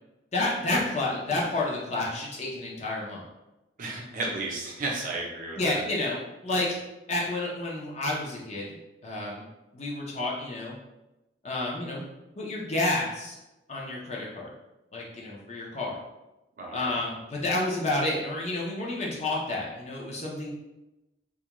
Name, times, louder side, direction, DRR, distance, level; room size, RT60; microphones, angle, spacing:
voice 1, 0.3-3.2 5.6-6.8 7.1-8.7 9.0-9.4 9.7-10.7 11.4-12.0 12.4-13.4 13.7-14.5 14.9-16.0 16.7-20.5, left 2 dB, 35° left, -4 dB, 0.5 m, -30 dB
voice 2, 3.8-5.8 16.6-17.0, right 2 dB, 45° right, -2 dB, 0.5 m, -33 dB
2.3 x 2.2 x 2.9 m, 0.97 s
head